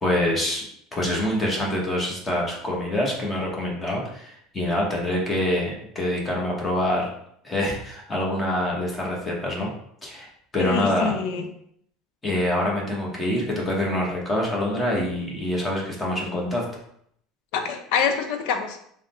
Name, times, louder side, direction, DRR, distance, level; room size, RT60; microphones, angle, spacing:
voice 1, 0.0-0.6 0.9-7.1 7.4-9.7 10.0-11.1 12.2-16.6, left 1 dB, 15° left, -2 dB, 1.0 m, -25 dB
voice 2, 10.6-11.4 17.5-18.8, left 6 dB, 70° left, 6 dB, 0.6 m, -25 dB
3.6 x 2.1 x 4.2 m, 0.69 s
cardioid pair, 145°, 0 cm